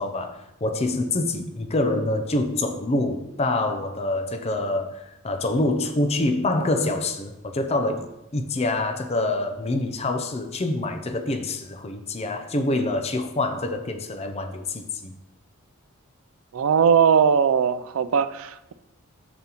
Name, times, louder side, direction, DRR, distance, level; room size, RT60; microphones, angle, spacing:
voice 1, 0.0-15.2, left 2 dB, 30° left, 7 dB, 0.5 m, -26 dB
voice 2, 16.5-18.7, right 7 dB, 75° right, 14 dB, 0.4 m, -20 dB
7.3 x 7.0 x 2.9 m, 0.88 s
head